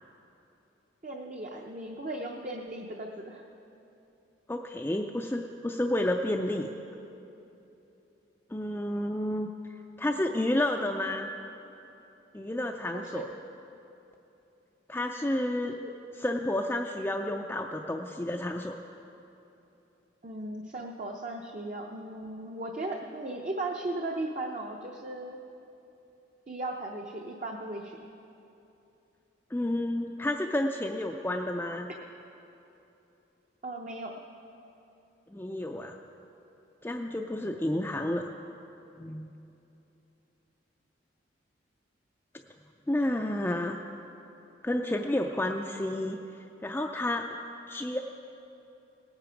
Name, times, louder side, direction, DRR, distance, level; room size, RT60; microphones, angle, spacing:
voice 1, 1.0-3.5 12.9-13.3 15.8-15.9 20.2-25.4 26.5-28.0 33.6-34.1, right 2 dB, 40° right, 1 dB, 0.6 m, -37 dB
voice 2, 4.5-6.7 8.5-9.5 10.0-11.3 12.3-13.2 14.9-15.7 16.2-18.8 29.5-31.9 35.3-36.0 36.8-38.3 39.0-39.3 42.9-43.8 44.6-46.2 46.6-47.3 47.7-48.0, left 1 dB, 10° left, 2 dB, 0.3 m, -30 dB
18.0 x 9.0 x 5.1 m, 3.0 s
head